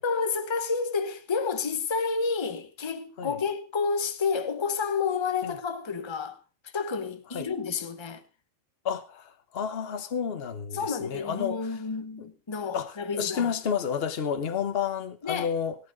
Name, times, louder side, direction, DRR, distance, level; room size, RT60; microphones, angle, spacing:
voice 1, 0.0-6.4 6.6-8.2 10.7-13.5 15.2-15.5, left 5 dB, 25° left, 0.9 m, -30 dB
voice 2, 8.8-11.8 12.7-15.8, left 7 dB, 50° left, 1.2 m, -31 dB
18.5 x 8.9 x 3.9 m
omnidirectional pair, 1.3 m